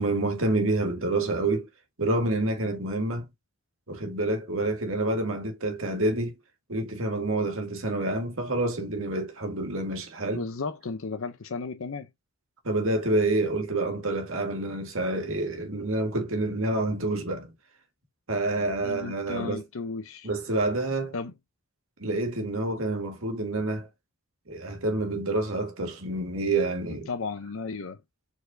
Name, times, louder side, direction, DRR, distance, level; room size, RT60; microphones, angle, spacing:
voice 1, 0.0-1.7 2.0-3.3 3.9-6.4 6.7-10.4 12.6-17.5 18.3-19.6 20.2-21.1 22.0-23.9 24.5-27.1, right 2 dB, 65° right, 1.6 m, -28 dB
voice 2, 10.3-12.1 18.8-20.3 21.1-21.3 26.9-28.0, left 4 dB, 65° left, 0.6 m, -34 dB
4.7 x 4.1 x 2.6 m
head